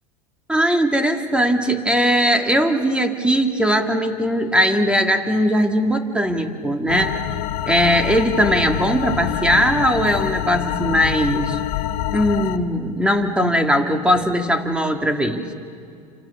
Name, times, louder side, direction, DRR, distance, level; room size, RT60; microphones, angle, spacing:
voice 1, 0.5-7.2 7.7-11.6 12.1-15.4, equal, 5° right, 5 dB, 2.3 m, -19 dB
sound 1, 6.9-12.6, left 12 dB, 70° left, 1.3 m, -26 dB
28.0 x 27.5 x 7.2 m, 2.4 s
supercardioid pair, 115°, 20 cm